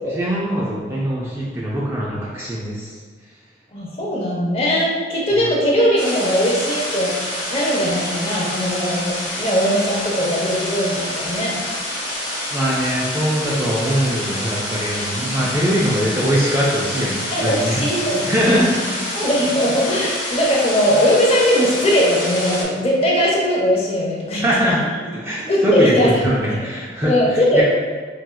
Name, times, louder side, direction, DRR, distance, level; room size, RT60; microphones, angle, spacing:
voice 1, 0.1-2.9 12.5-17.8 18.3-18.9 24.4-24.8 25.1-27.6, equal, 15° right, -6 dB, 0.3 m, -21 dB
voice 2, 3.7-11.6 15.4-15.7 17.3-18.7 19.1-24.8 25.5-26.1 27.0-27.6, equal, 30° left, -4 dB, 0.6 m, -20 dB
sound 1, 6.0-22.6, left 1 dB, 90° left, 1.0 m, -27 dB
4.1 x 2.3 x 2.2 m, 1.5 s
head